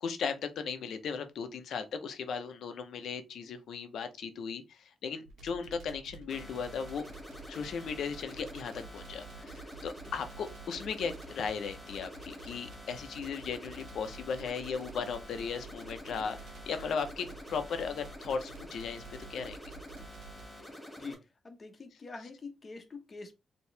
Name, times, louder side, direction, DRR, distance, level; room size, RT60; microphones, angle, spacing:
voice 1, 0.0-7.0 7.5-19.0 19.3-19.6, left 6 dB, 80° left, 0.8 m, -37 dB
sound 1, 5.2-20.5, right 4 dB, 90° right, 1.2 m, -50 dB
sound 2, 6.3-21.1, left 1 dB, 15° left, 2.1 m, -48 dB
voice 2, 21.0-23.3, left 4 dB, 35° left, 1.0 m, -45 dB
4.5 x 3.0 x 3.3 m
wide cardioid pair, 125°, 0 cm